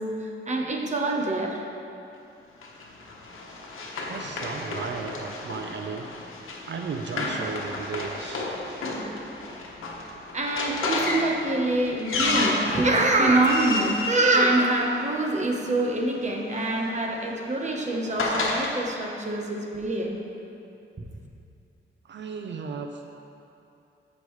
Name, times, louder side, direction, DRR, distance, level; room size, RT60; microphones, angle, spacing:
voice 1, 0.0-1.6 10.3-20.2, right 2 dB, 35° right, 0 dB, 1.0 m, -25 dB
Run, 2.6-15.2 16.2-18.7, left 2 dB, 90° left, 1.0 m, -32 dB
voice 2, 4.1-6.1 6.7-8.5 22.0-23.1, right 5 dB, 60° right, 4 dB, 0.5 m, -35 dB
13.5 x 5.2 x 3.2 m, 2.7 s
wide cardioid pair, 125°, 21 cm